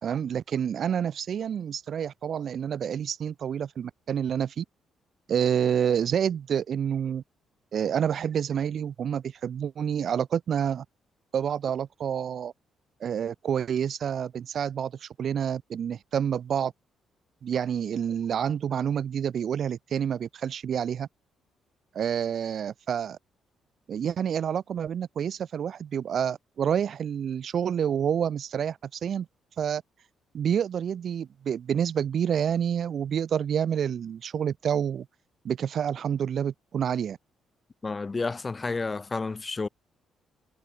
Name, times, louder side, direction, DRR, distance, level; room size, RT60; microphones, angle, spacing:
voice 1, 0.0-4.6 5.3-7.2 7.7-10.8 11.3-12.5 13.0-16.7 17.4-21.1 21.9-23.2 23.9-29.3 29.6-29.8 30.3-35.1 35.4-37.2, right 8 dB, 60° right, 0.5 m, -28 dB
voice 2, 37.8-39.7, left 3 dB, 25° left, 0.3 m, -30 dB
cardioid pair, 90°, 0 cm